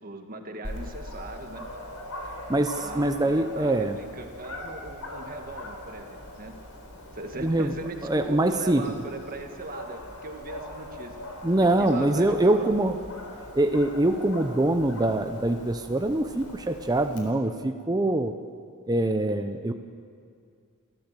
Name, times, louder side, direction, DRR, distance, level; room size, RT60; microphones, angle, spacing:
voice 1, 0.0-1.7 2.8-6.6 7.1-11.2 11.6-12.7, right 2 dB, 40° right, 4 dB, 1.7 m, -39 dB
Dog, 0.6-17.2, left 1 dB, 85° left, 4.0 m, -41 dB
voice 2, 2.5-4.0 7.4-7.7 8.0-9.0 11.4-12.9 13.5-18.3 18.9-19.7, right 1 dB, 15° right, 7 dB, 0.7 m, -24 dB
28.5 x 14.0 x 7.5 m, 2.3 s
head